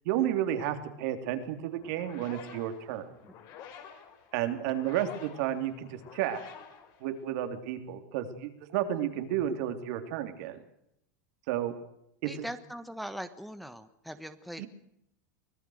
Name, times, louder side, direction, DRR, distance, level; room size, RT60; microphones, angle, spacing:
voice 1, 0.1-3.1 4.3-6.4 7.0-10.6 11.5-11.7 12.2-12.5 14.6-14.7, right 11 dB, 65° right, 7 dB, 3.5 m, -32 dB
sound 1, 1.8-7.6, left 8 dB, 45° left, 5.4 m, -50 dB
voice 2, 12.3-14.6, equal, ahead, 9 dB, 1.2 m, -41 dB
25.0 x 18.0 x 6.6 m, 0.78 s
supercardioid pair, 130°, 9 cm